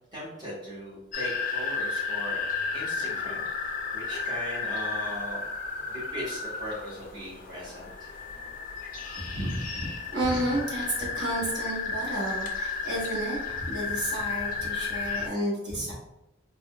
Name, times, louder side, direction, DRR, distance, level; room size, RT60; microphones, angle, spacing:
voice 1, 0.1-2.4 2.7-5.4 5.9-8.1, equal, 25° right, -8 dB, 1.2 m, -39 dB
sound 1, 1.1-15.3, left 4 dB, 45° left, 0.3 m, -33 dB
voice 2, 9.2-15.9, right 1 dB, 60° right, -5 dB, 1.0 m, -31 dB
3.5 x 2.3 x 2.2 m, 0.87 s
head